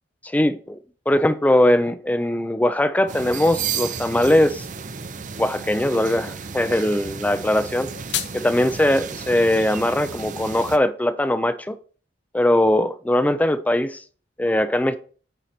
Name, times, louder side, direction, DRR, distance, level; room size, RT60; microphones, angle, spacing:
voice 1, 0.2-0.8 1.1-4.7 5.4-7.9 8.3-11.8 12.3-14.0 14.4-15.0, left 1 dB, 10° left, 0.4 m, -20 dB
sound 1, 3.1-10.8, right 6 dB, 45° right, 0.6 m, -33 dB
sound 2, 7.7-8.7, left 10 dB, 70° left, 0.9 m, -31 dB
9.0 x 4.4 x 4.3 m
head